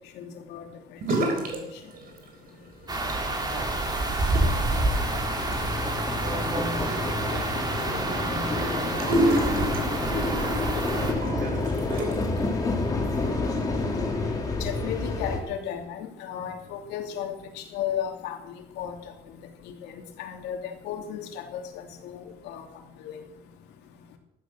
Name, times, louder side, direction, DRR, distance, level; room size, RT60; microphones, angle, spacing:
voice 1, 0.2-0.7 1.2-1.5 7.6-8.0 14.6-18.4 18.8-18.9 19.6-20.6 20.8-22.6 23.0-23.1, left 9 dB, 90° left, 2.7 m, -34 dB
sound 1, 1.0-1.6 1.9-2.5 2.9-12.4, right 1 dB, 60° right, 4.0 m, -31 dB
sound 2, 2.9-11.1, right 2 dB, 25° right, 3.2 m, -28 dB
voice 2, 3.5-5.3 6.2-12.3, right 3 dB, 90° right, 3.3 m, -40 dB
sound 3, 3.7-15.4, left 3 dB, 20° left, 3.3 m, -30 dB
14.5 x 12.0 x 6.3 m
cardioid pair, 110°, 17 cm